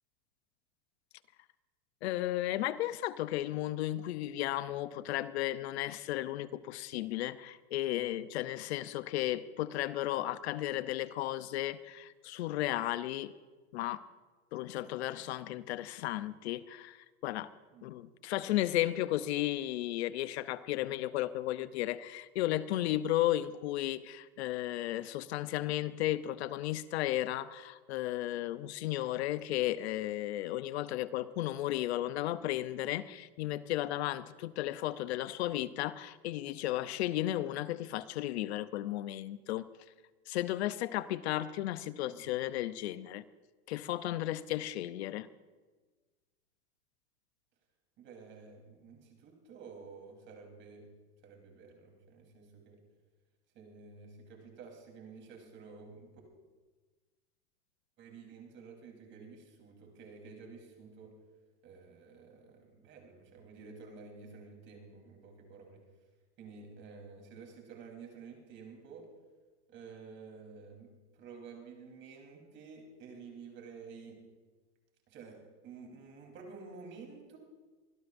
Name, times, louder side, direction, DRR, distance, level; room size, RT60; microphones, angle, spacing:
voice 1, 2.0-13.3 13.7-14.0 14.5-17.5 17.8-39.6 40.3-43.2 43.7-45.3, left 14 dB, 65° left, 14 dB, 0.7 m, -34 dB
voice 2, 48.0-50.9 51.2-52.8 53.5-56.1 58.0-61.1 61.6-65.8 66.4-69.1 69.7-74.2 75.1-77.4, right 5 dB, 35° right, 2 dB, 3.7 m, -51 dB
24.5 x 17.0 x 2.6 m, 1.3 s
supercardioid pair, 145°, 34 cm